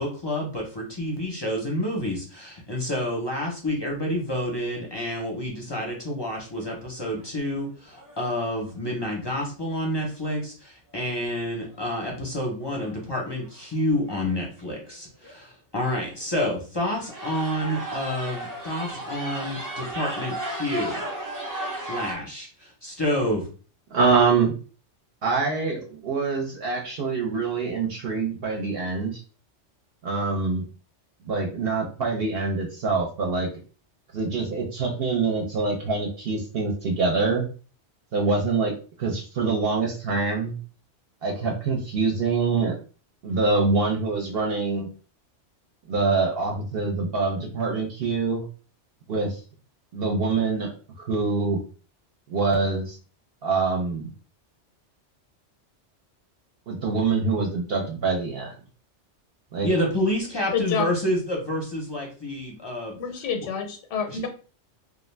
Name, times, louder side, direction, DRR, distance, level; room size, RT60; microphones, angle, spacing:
voice 1, 0.0-21.0 21.8-23.5 59.6-63.0 64.1-64.2, left 1 dB, 30° left, -2 dB, 0.5 m, -29 dB
sound 1, 6.5-7.0 7.5-7.6 7.9-8.5 11.7-11.8 12.9-13.0 13.3-13.6 14.1-14.2 14.9-15.0 15.2-15.4 15.8-16.3 16.8-22.2, right 1 dB, 30° right, 0.4 m, -35 dB
voice 2, 23.9-24.5 25.2-29.2 30.0-30.7 31.3-33.5 34.1-37.5 38.1-38.7 39.0-40.6 41.2-42.8 43.2-44.9 45.9-48.4 49.1-49.4 49.9-51.6 52.3-53.0 53.4-54.1 56.7-58.5 59.5-59.7, right 4 dB, 60° right, -1 dB, 0.8 m, -25 dB
voice 3, 60.5-60.9 63.0-64.3, left 6 dB, 85° left, 5 dB, 0.9 m, -28 dB
2.4 x 2.2 x 3.1 m, 0.37 s
omnidirectional pair, 1.2 m